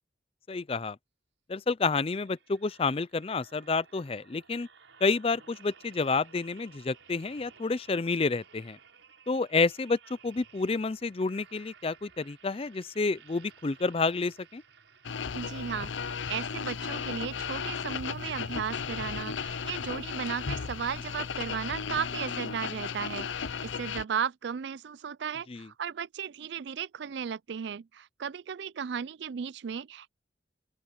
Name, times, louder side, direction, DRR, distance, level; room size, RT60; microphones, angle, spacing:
voice 1, 0.5-1.0 1.5-4.7 5.0-8.8 9.3-14.6 25.5-25.7, left 4 dB, 30° left, 0.4 m, -29 dB
sound 1, 2.1-15.7 16.3-16.5, right 6 dB, 90° right, 7.0 m, -57 dB
sound 2, 15.0-24.0, left 6 dB, 85° left, 0.7 m, -35 dB
voice 2, 15.3-30.1, right 7 dB, 65° right, 0.4 m, -35 dB
open air
head